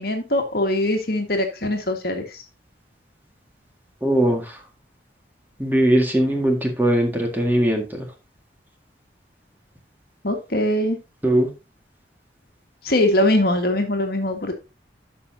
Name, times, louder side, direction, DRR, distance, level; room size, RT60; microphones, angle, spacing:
voice 1, 0.0-2.4 10.2-11.0 12.8-14.5, left 1 dB, 55° left, 4 dB, 1.7 m, -22 dB
voice 2, 4.0-4.6 5.6-8.1 11.2-11.5, right 1 dB, 10° right, 2 dB, 1.9 m, -20 dB
12.0 x 5.7 x 2.8 m, 0.27 s
head